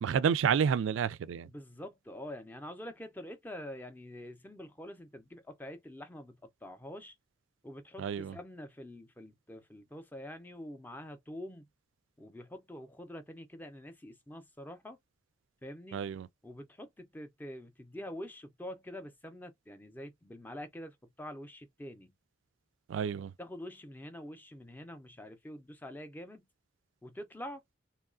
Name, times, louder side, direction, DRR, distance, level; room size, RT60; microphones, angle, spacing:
voice 1, 0.0-1.5 8.0-8.4 15.9-16.3 22.9-23.3, right 7 dB, 70° right, 0.3 m, -30 dB
voice 2, 1.4-7.2 7.6-11.7 12.2-15.0 15.6-16.1 16.4-22.1 23.4-26.5 27.0-27.6, left 1 dB, 10° left, 0.4 m, -46 dB
3.0 x 2.3 x 2.4 m
head